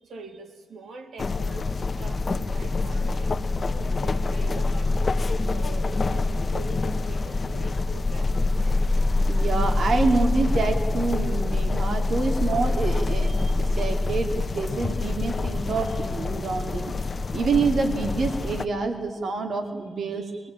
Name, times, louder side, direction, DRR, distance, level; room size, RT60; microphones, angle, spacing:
voice 1, 0.0-8.8, right 3 dB, 85° right, 3.2 m, -44 dB
sound 1, 1.2-18.7, left 3 dB, 35° left, 1.1 m, -25 dB
voice 2, 9.3-16.9 17.3-20.5, right 4 dB, 65° right, 2.6 m, -27 dB
24.0 x 22.5 x 8.9 m
wide cardioid pair, 125°, 0 cm